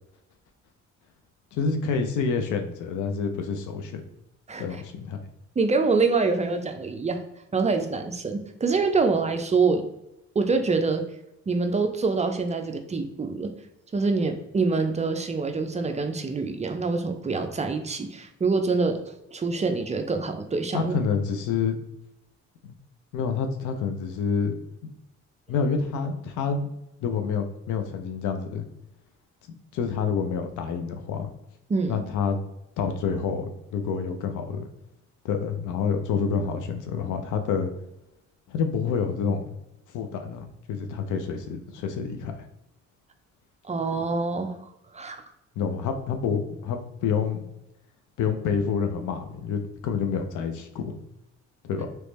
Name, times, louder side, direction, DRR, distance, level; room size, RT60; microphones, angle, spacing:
voice 1, 1.5-4.0 4.6-5.2 20.7-21.8 22.6-22.7 23.1-24.6 25.5-26.7 27.0-28.6 29.7-31.3 31.9-32.4 32.8-34.7 35.2-37.7 38.5-39.6 39.9-42.5 45.6-47.4 48.2-51.0 51.6-51.9, left 6 dB, 80° left, 6 dB, 0.6 m, -28 dB
voice 2, 5.6-7.2 7.5-9.8 10.4-11.0 11.5-13.5 13.9-21.0 31.7-32.0 43.6-44.6 44.9-45.2, right 4 dB, 25° right, 6 dB, 0.4 m, -25 dB
3.2 x 3.0 x 3.1 m, 0.86 s
cardioid pair, 90°, 30 cm